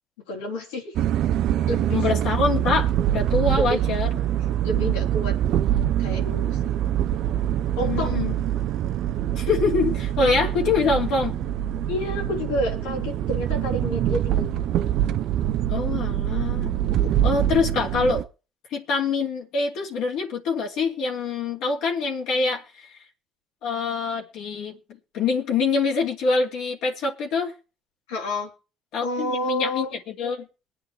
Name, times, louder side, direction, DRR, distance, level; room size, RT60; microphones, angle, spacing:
voice 1, 0.3-1.0 1.7-2.1 3.6-3.8 4.6-5.4 6.0-6.7 7.8-8.2 11.9-14.8 17.0-17.1 28.1-28.5 29.0-29.9, left 1 dB, 90° left, 4.0 m, -29 dB
sound 1, 0.9-18.2, right 11 dB, 70° right, 0.6 m, -24 dB
voice 2, 1.9-4.1 7.8-8.3 9.4-11.4 15.7-16.8 17.2-18.2 18.7-22.9 23.6-24.8 25.1-27.5 28.9-30.5, left 4 dB, 75° left, 2.6 m, -25 dB
23.5 x 8.5 x 3.3 m
hypercardioid pair, 60°, 0 cm